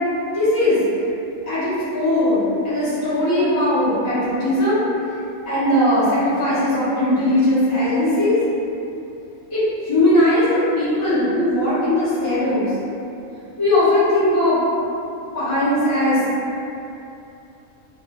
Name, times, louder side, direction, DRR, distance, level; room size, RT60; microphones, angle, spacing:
voice 1, 0.3-0.8 1.5-4.8 5.5-8.4 9.5-12.7 13.6-14.6 15.3-16.2, left 1 dB, 25° left, -16 dB, 0.9 m, -19 dB
2.7 x 2.3 x 2.3 m, 2.8 s
omnidirectional pair, 1.4 m